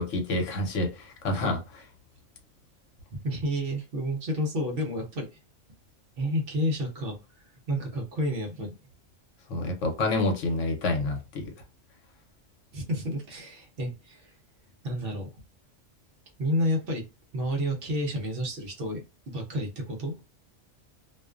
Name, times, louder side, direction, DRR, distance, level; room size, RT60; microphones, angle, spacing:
voice 1, 0.0-1.8 9.5-11.5, left 2 dB, 80° left, 1.1 m, -28 dB
voice 2, 3.1-5.3 6.2-7.2 7.7-8.8 12.7-14.3 14.8-15.3 16.4-17.0 17.3-19.0 19.3-20.1, equal, 55° right, 0.8 m, -30 dB
2.4 x 2.2 x 2.4 m
omnidirectional pair, 1.3 m